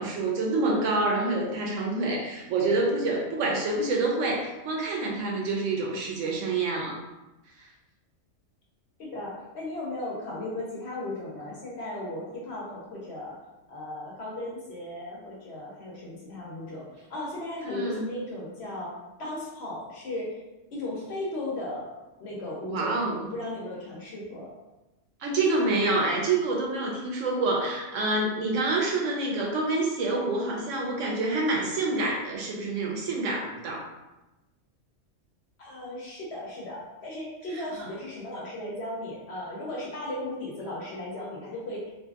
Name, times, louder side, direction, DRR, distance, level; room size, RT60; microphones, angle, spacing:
voice 1, 0.0-7.0 7.6-7.7 17.7-18.1 22.7-23.3 25.2-33.9, right 2 dB, 80° right, -1 dB, 0.9 m, -27 dB
voice 2, 9.0-13.4 13.7-20.4 20.7-21.9 22.2-23.0 23.3-24.5 35.6-41.9, left 1 dB, 60° left, -4 dB, 0.9 m, -36 dB
2.7 x 2.5 x 2.3 m, 1.0 s
omnidirectional pair, 1.3 m